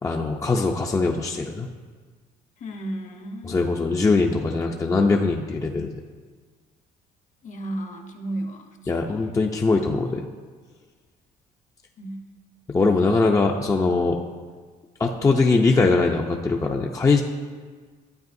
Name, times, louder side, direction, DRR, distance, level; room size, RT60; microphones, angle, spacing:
voice 1, 0.0-1.7 3.5-6.0 8.9-10.3 12.7-14.2 15.0-17.2, left 3 dB, 20° left, 1 dB, 0.5 m, -21 dB
voice 2, 2.6-3.6 7.4-9.3 12.0-12.2, right 1 dB, 45° left, 5 dB, 0.9 m, -34 dB
12.0 x 8.7 x 2.6 m, 1.5 s
cardioid pair, 110°, 17 cm